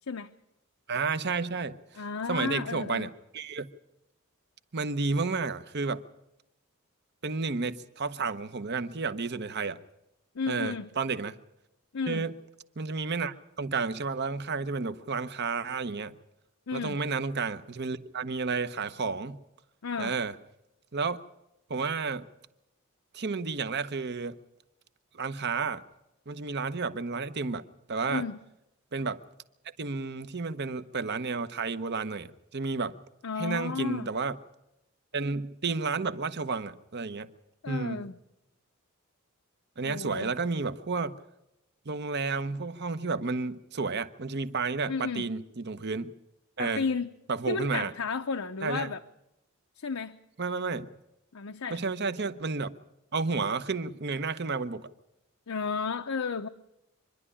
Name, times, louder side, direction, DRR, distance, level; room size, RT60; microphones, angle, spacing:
voice 1, 0.9-1.8 2.3-3.7 4.7-6.0 7.2-9.8 10.5-11.3 12.1-12.3 12.8-16.1 16.7-19.4 20.0-20.4 20.9-21.2 21.7-22.3 23.1-24.4 25.1-25.8 26.3-27.6 27.9-28.3 28.9-29.2 29.8-32.9 33.4-34.4 35.1-37.3 37.7-38.0 39.8-41.1 41.9-46.1 46.6-46.8 47.3-47.9 48.6-48.9 50.4-50.9 51.7-52.7 53.1-54.9, right 4 dB, 50° right, 12 dB, 0.9 m, -31 dB
voice 2, 2.0-3.1 10.3-10.9 11.9-12.3 16.7-17.0 19.8-20.1 28.1-28.4 33.2-34.1 37.6-38.1 39.8-40.3 44.9-45.3 46.6-47.1 47.5-49.0 49.8-50.2 51.3-51.8 55.5-56.5, left 5 dB, 80° left, 6 dB, 0.7 m, -33 dB
25.0 x 11.0 x 9.9 m, 0.89 s
head